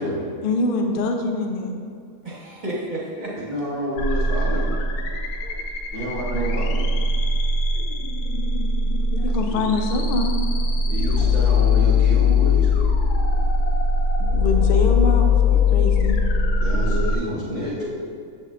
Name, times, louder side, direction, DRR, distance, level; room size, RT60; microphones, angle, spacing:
voice 1, 0.4-1.7 5.4-5.6 7.8-7.9 9.1-10.7 14.3-16.2, left 2 dB, 60° left, 4 dB, 0.6 m, -25 dB
voice 2, 2.2-3.4 17.8-17.9, equal, 35° right, -5 dB, 1.2 m, -31 dB
voice 3, 3.5-4.8 5.9-6.8 9.5-9.6 10.9-12.7 16.6-17.8, equal, 40° left, -10 dB, 1.5 m, -28 dB
sound 1, 4.0-17.2, left 4 dB, 85° left, 1.1 m, -20 dB
7.6 x 6.3 x 2.5 m, 2.3 s
omnidirectional pair, 1.6 m